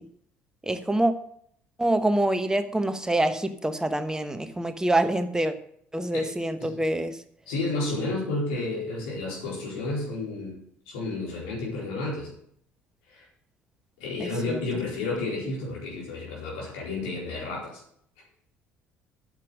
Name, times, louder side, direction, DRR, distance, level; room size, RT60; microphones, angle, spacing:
voice 1, 0.7-1.1 1.8-5.5 5.9-7.2 14.2-14.6, right 1 dB, 10° right, 9 dB, 1.1 m, -25 dB
voice 2, 7.5-10.6 10.9-12.3 13.1-13.2 14.0-17.8, left 2 dB, 65° left, -4 dB, 4.3 m, -31 dB
8.9 x 8.0 x 6.3 m, 0.67 s
figure-of-eight pair, 50°, 6 cm